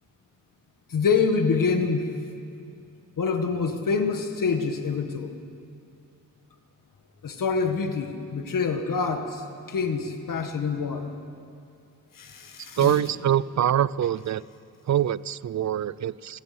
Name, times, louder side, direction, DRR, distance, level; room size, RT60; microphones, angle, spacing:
voice 1, 0.9-2.1 3.2-5.3 7.2-11.1 12.1-13.0, left 5 dB, 75° left, 6 dB, 1.8 m, -26 dB
voice 2, 12.8-14.4 14.9-16.4, right 10 dB, 55° right, 19 dB, 0.5 m, -24 dB
29.5 x 19.0 x 6.1 m, 2.4 s
wide cardioid pair, 160°, 33 cm